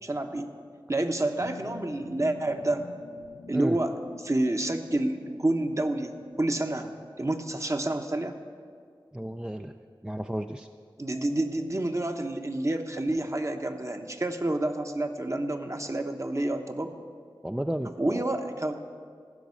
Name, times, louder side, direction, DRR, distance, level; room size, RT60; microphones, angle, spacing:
voice 1, 0.0-0.5 0.9-2.8 3.5-3.9 4.2-6.9 7.2-8.4 11.0-16.9 18.0-18.8, right 1 dB, 35° right, 5 dB, 1.0 m, -29 dB
sound 1, 1.4-7.2, left 3 dB, 90° left, 0.6 m, -47 dB
voice 2, 9.1-9.7 10.0-10.7 17.4-18.3, right 1 dB, 10° right, 7 dB, 0.4 m, -32 dB
15.5 x 6.0 x 8.4 m, 2.1 s
cardioid pair, 40°, 9 cm